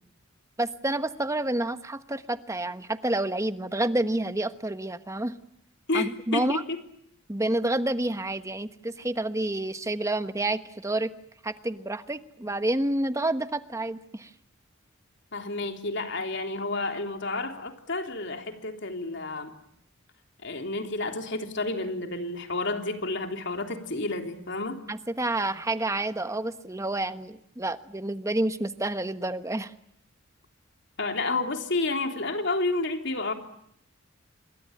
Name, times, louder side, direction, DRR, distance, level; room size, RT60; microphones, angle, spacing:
voice 1, 0.6-5.3 5.9-6.6 7.3-11.1 11.4-14.3 24.9-29.7, right 1 dB, 15° right, 10 dB, 1.2 m, -29 dB
voice 2, 5.9-6.8 15.3-19.5 20.4-24.8 31.0-33.3, left 2 dB, 60° left, 5 dB, 3.5 m, -30 dB
28.0 x 23.0 x 8.9 m, 0.71 s
head